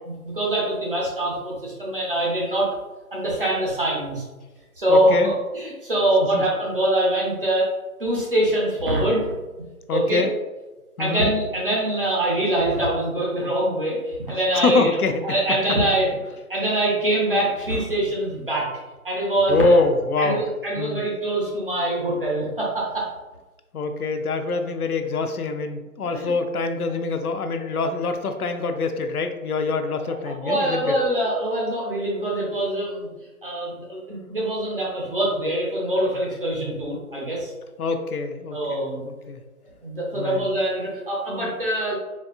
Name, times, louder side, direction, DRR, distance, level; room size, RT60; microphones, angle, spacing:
voice 1, 0.2-2.7 3.1-4.2 4.8-7.7 8.0-9.3 9.9-10.3 11.0-15.0 15.2-16.1 16.5-18.7 19.0-19.8 20.2-23.1 26.0-26.3 30.4-33.1 33.4-37.5 38.5-39.1 39.8-42.0, right 1 dB, 40° right, -4 dB, 0.8 m, -24 dB
voice 2, 4.9-5.3 6.3-6.4 9.9-10.3 11.0-11.3 14.5-15.1 15.5-15.6 19.5-20.4 20.8-21.1 23.7-31.0 37.8-39.4 40.1-40.5, left 3 dB, 85° left, 7 dB, 0.6 m, -24 dB
4.1 x 2.4 x 2.3 m, 1.2 s
figure-of-eight pair, 170°, 44 cm